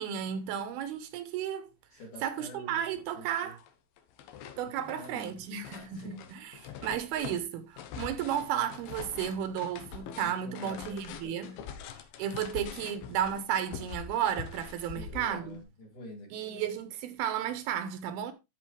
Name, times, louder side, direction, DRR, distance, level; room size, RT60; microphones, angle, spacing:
voice 1, 0.0-1.7 2.2-3.6 4.6-11.5 12.2-15.6 16.3-18.3, right 9 dB, 85° right, 2.8 m, -33 dB
voice 2, 1.9-3.6 4.6-5.5 5.9-6.3 6.7-6.9 10.2-11.7 12.2-13.0 14.9-16.7, left 1 dB, 55° left, 4.1 m, -48 dB
sound 1, 2.5-2.6 3.0-3.7 4.0-15.6, left 8 dB, 90° left, 2.8 m, -44 dB
13.0 x 5.1 x 3.3 m
omnidirectional pair, 4.4 m